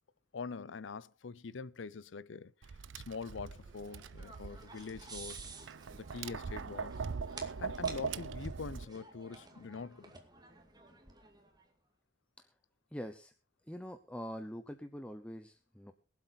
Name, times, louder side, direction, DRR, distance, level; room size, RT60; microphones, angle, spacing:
voice 1, 0.3-2.5 2.9-5.4 5.9-7.0 7.6-10.1, left 4 dB, 90° left, 0.6 m, -44 dB
Tap, 2.6-8.8, right 5 dB, 85° right, 0.5 m, -41 dB
sound 1, 3.1-11.6, right 3 dB, 20° right, 2.2 m, -52 dB
voice 2, 12.9-13.3 13.7-15.9, equal, 5° left, 0.7 m, -44 dB
23.0 x 8.0 x 4.1 m
head